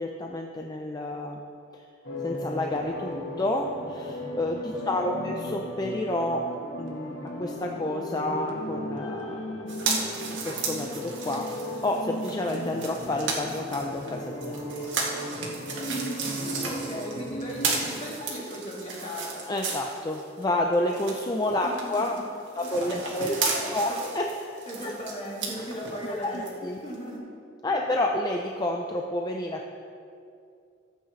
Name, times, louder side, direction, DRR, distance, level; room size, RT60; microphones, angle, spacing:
voice 1, 0.0-1.4 2.2-6.4 6.8-9.4 10.3-11.5 11.8-14.9 19.5-22.1 22.6-24.3 24.8-24.9 26.1-26.8 27.6-29.7, left 1 dB, 20° left, 2 dB, 0.5 m, -29 dB
sound 1, 2.0-17.8, left 1 dB, 80° left, 1.5 m, -36 dB
voice 2, 4.8-5.4 15.8-19.4 21.6-21.7 22.6-22.9 23.2-24.0 24.7-26.5 26.8-27.2, equal, 40° left, -6 dB, 2.8 m, -37 dB
sound 2, 9.7-20.4 20.7-26.5 26.9-27.0, right 4 dB, 85° right, 1.8 m, -34 dB
15.5 x 8.3 x 3.2 m, 2.5 s
head